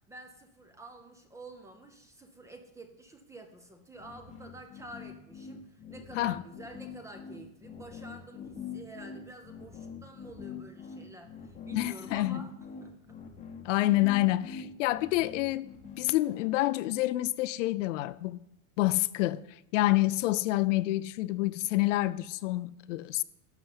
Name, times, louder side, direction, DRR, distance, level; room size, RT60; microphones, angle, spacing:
voice 1, 0.1-12.5 12.8-13.2 13.9-14.0, right 1 dB, 5° right, 0.5 m, -49 dB
sound 1, 4.0-16.5, left 6 dB, 15° left, 0.9 m, -44 dB
voice 2, 11.7-12.4 13.6-15.7 16.0-18.4 18.8-19.4 19.7-23.2, left 17 dB, 55° left, 0.5 m, -28 dB
11.5 x 6.9 x 7.9 m
supercardioid pair, 170°, 45 cm